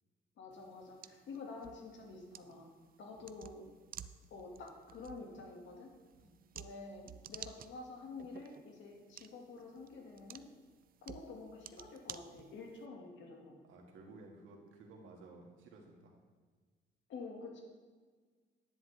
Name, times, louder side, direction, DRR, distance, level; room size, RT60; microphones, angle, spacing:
voice 1, 0.4-2.7 3.0-3.7 4.3-5.9 6.5-10.5 11.0-13.6 17.1-17.6, left 3 dB, 70° left, 1 dB, 2.0 m, -49 dB
sound 1, 0.5-12.9, right 9 dB, 45° right, 0.5 m, -54 dB
voice 2, 13.6-16.1, right 3 dB, 85° right, 0 dB, 2.0 m, -55 dB
10.5 x 10.5 x 3.4 m, 1.5 s
cardioid pair, 90°, 20 cm